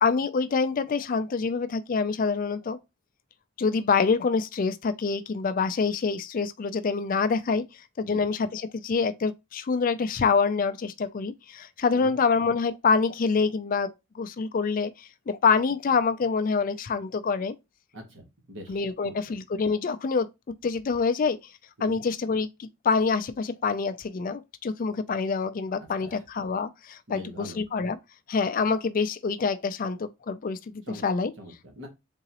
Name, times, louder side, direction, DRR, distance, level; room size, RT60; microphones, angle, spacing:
voice 1, 0.0-2.8 3.6-7.6 8.0-17.5 18.7-20.3 20.6-21.4 21.8-28.0 28.3-31.3, left 5 dB, 40° left, 0.3 m, -26 dB
voice 2, 17.9-18.8 19.0-19.2 21.8-22.0 26.0-26.2 27.1-27.6 30.8-31.0 31.4-31.9, equal, 60° right, 1.5 m, -43 dB
3.9 x 3.7 x 2.9 m
head